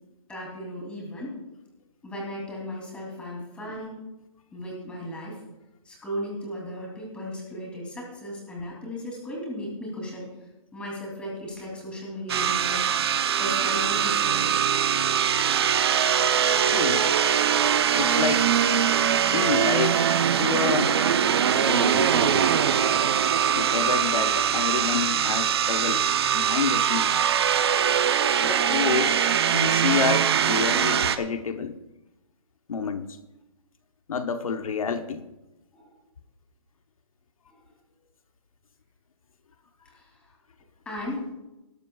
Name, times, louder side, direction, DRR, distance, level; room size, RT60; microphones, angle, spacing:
voice 1, 0.3-1.4 2.0-4.1 4.5-5.4 5.8-10.3 10.7-12.9 13.4-14.5 35.7-36.0 37.5-37.6 39.9-40.1 40.8-41.3, equal, 5° left, -2 dB, 3.0 m, -36 dB
sound 1, 12.3-31.2, right 8 dB, 45° right, 0.8 m, -22 dB
voice 2, 16.6-17.0 17.9-18.5 19.2-20.1 20.4-21.0 21.5-22.5 23.5-27.2 28.4-29.2 29.5-31.8 32.7-33.2 34.1-35.2, left 5 dB, 80° left, 8 dB, 1.0 m, -29 dB
20.0 x 12.0 x 2.4 m, 0.99 s
hypercardioid pair, 165°, 18 cm